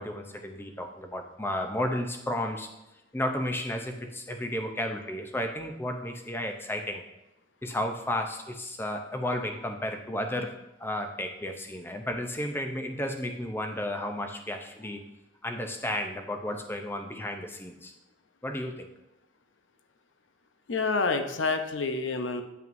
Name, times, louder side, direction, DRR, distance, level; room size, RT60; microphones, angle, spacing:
voice 1, 0.0-2.7 3.1-7.1 7.6-10.5 10.8-15.0 15.4-17.9 18.4-18.9, left 1 dB, 10° left, 5 dB, 0.6 m, -33 dB
voice 2, 20.7-22.4, left 4 dB, 70° left, 7 dB, 0.6 m, -28 dB
9.0 x 5.5 x 2.6 m, 0.94 s
head